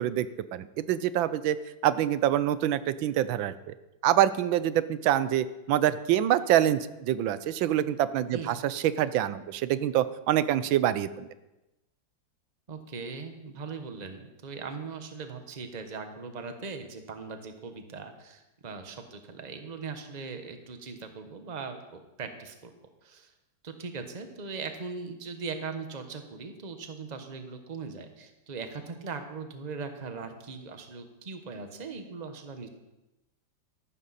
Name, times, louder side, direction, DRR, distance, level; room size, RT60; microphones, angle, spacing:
voice 1, 0.0-1.6 1.8-3.7 4.0-11.3, right 12 dB, 90° right, 15 dB, 1.4 m, -26 dB
voice 2, 8.3-8.6 12.7-22.7 23.0-23.3 23.6-32.7, right 4 dB, 25° right, 6 dB, 1.0 m, -40 dB
14.5 x 12.0 x 4.2 m, 0.98 s
omnidirectional pair, 2.1 m